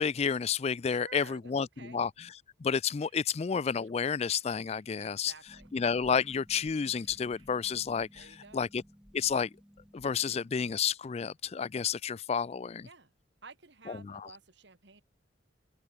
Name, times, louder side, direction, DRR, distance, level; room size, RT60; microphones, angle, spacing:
voice 1, 0.0-2.1 2.6-5.3 5.7-8.3 8.5-8.8 9.1-9.5 9.9-12.9 13.9-14.3, left 6 dB, 35° left, 0.3 m, -30 dB
voice 2, 0.8-2.0 5.0-5.7 8.1-8.7 12.8-13.1 13.4-15.0, right 4 dB, 60° right, 2.1 m, -53 dB
Scratching (performance technique), 3.0-8.4, right 7 dB, 85° right, 7.6 m, -70 dB
Harp, 5.5-10.7, equal, 5° right, 3.4 m, -57 dB
open air
head